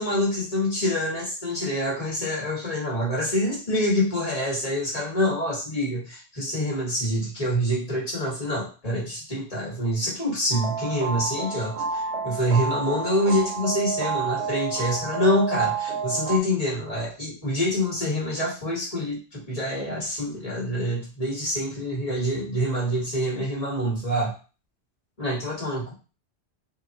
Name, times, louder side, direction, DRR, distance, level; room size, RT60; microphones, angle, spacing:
voice 1, 0.0-24.3 25.2-25.9, equal, 30° left, -4 dB, 1.9 m, -26 dB
sound 1, 10.5-16.4, right 5 dB, 70° right, 1.0 m, -29 dB
4.4 x 3.0 x 2.9 m, 0.33 s
omnidirectional pair, 1.2 m